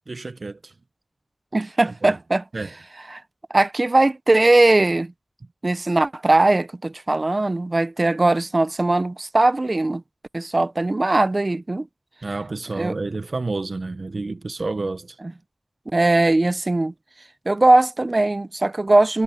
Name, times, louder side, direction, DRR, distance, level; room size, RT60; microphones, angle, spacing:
voice 1, 0.1-0.7 2.0-2.2 2.5-2.7 12.2-15.2, right 3 dB, 65° right, 1.1 m, -29 dB
voice 2, 1.5-2.4 3.1-3.2 3.5-5.1 5.6-10.0 10.3-11.9 12.8-13.0 15.2-15.3 15.9-16.9 17.5-19.2, right 2 dB, 40° right, 0.7 m, -19 dB
wide cardioid pair, 65°, 0 cm